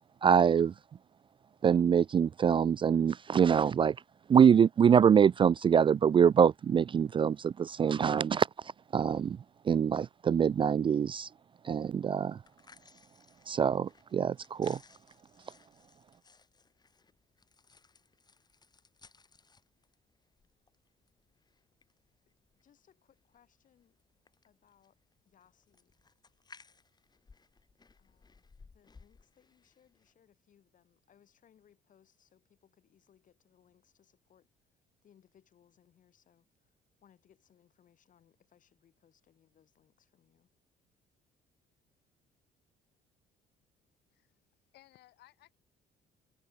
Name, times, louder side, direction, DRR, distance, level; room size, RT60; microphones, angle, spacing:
voice 1, 0.2-0.7 1.6-4.0 4.3-8.5 8.9-9.4 9.7-11.3 11.6-12.4 13.5-14.8, right 7 dB, 30° right, 0.4 m, -24 dB
sound 1, 12.3-30.1, left 4 dB, 25° left, 4.4 m, -62 dB
voice 2, 22.6-24.0 24.4-25.0 25.3-25.9 28.0-28.4 28.7-34.5 35.0-36.4 37.0-40.5, left 9 dB, 50° left, 7.5 m, -67 dB
voice 3, 44.1-45.6, left 16 dB, 80° left, 6.9 m, -62 dB
cardioid pair, 110°, 17 cm